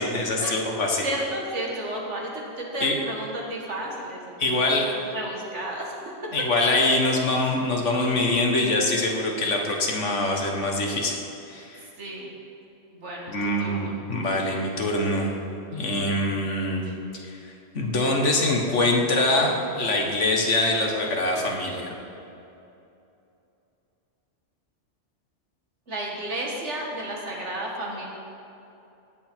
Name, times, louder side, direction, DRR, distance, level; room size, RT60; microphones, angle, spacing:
voice 1, 0.0-1.1 2.8-2.9 4.4-4.9 6.3-11.2 11.5-11.9 13.3-15.3 15.7-16.8 17.2-21.9, left 2 dB, 75° left, 1 dB, 1.7 m, -24 dB
voice 2, 1.0-5.9 8.9-9.0 12.0-12.3 12.9-14.0 25.9-28.1, right 1 dB, 70° right, -2 dB, 2.0 m, -32 dB
17.5 x 8.0 x 4.5 m, 2.8 s
omnidirectional pair, 1.3 m